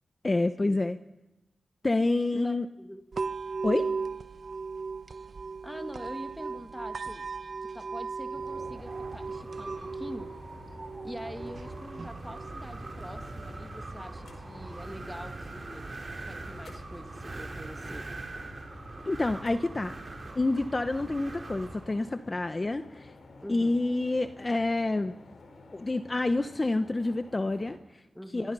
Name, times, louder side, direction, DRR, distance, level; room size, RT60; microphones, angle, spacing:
voice 1, 0.2-1.0 1.8-2.7 3.6-3.9 19.1-19.9 20.3-23.1 23.5-25.1 25.7-28.0 28.3-28.5, left 2 dB, 30° left, 10 dB, 0.9 m, -28 dB
voice 2, 2.3-3.0 5.6-7.3 7.6-10.3 11.0-18.1 23.4-23.8 28.1-28.5, equal, 5° left, 7 dB, 1.8 m, -44 dB
sound 1, 3.1-17.1, right 4 dB, 55° right, 1.2 m, -38 dB
sound 2, 8.3-27.8, left 3 dB, 80° left, 4.8 m, -51 dB
Wind, 8.4-22.1, right 2 dB, 40° right, 3.4 m, -42 dB
26.5 x 23.5 x 5.6 m, 0.96 s
wide cardioid pair, 95°, 0 cm